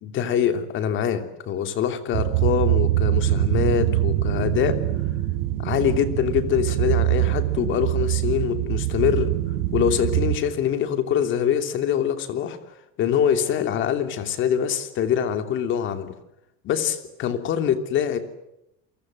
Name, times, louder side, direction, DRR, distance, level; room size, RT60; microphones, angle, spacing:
voice 1, 0.0-4.8 5.6-9.3 9.7-12.6 13.0-16.1 16.6-18.2, left 9 dB, 40° left, 8 dB, 3.1 m, -24 dB
sound 1, 2.1-10.4, right 16 dB, 90° right, 4.6 m, -23 dB
30.0 x 23.5 x 7.9 m, 0.84 s
cardioid pair, 165°, 29 cm